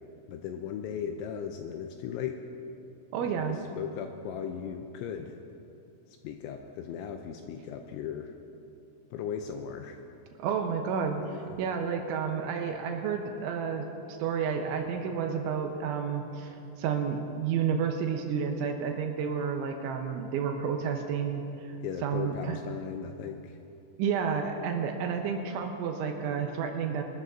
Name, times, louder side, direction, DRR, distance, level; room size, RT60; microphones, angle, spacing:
voice 1, 0.3-2.4 3.4-5.4 6.1-8.3 9.1-10.0 11.3-11.6 21.8-23.6, left 8 dB, 85° left, 5 dB, 2.7 m, -37 dB
voice 2, 3.1-3.6 10.4-21.7 22.0-22.6 24.0-27.0, right 6 dB, 75° right, 4 dB, 3.1 m, -31 dB
24.5 x 13.0 x 2.6 m, 2.8 s
omnidirectional pair, 5.8 m